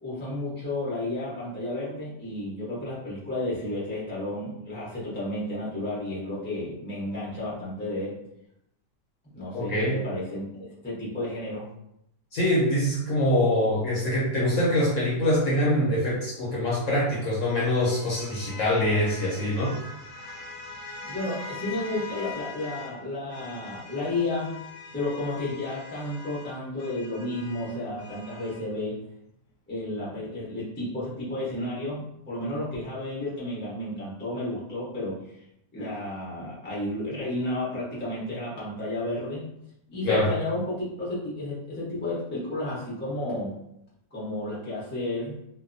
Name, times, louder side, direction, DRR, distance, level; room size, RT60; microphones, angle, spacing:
voice 1, 0.0-8.2 9.3-10.4 10.8-11.7 21.0-24.6 24.9-29.0 29.7-35.2 35.7-39.5 39.9-43.6 44.1-45.4, left 1 dB, 10° left, -8 dB, 0.5 m, -32 dB
voice 2, 9.5-10.0 12.3-19.7 40.0-40.3, left 1 dB, 60° left, -6 dB, 1.0 m, -24 dB
sound 1, 16.3-23.0 23.3-28.7, left 3 dB, 85° left, 1.2 m, -42 dB
2.6 x 2.2 x 2.5 m, 0.79 s
omnidirectional pair, 1.8 m